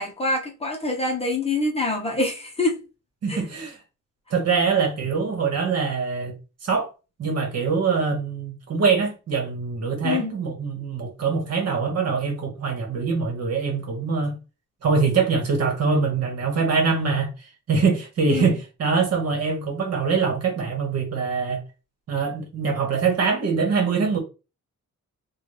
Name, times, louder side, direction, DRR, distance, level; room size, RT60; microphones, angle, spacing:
voice 1, 0.0-2.8 3.3-3.4 10.0-10.3 18.3-18.5, left 2 dB, 20° left, 0.6 m, -25 dB
voice 2, 3.2-3.8 4.3-6.3 6.6-6.9 7.2-14.4 14.8-21.6 22.1-24.2, right 5 dB, 55° right, 1.2 m, -23 dB
3.9 x 2.3 x 3.3 m
wide cardioid pair, 175°, 30 cm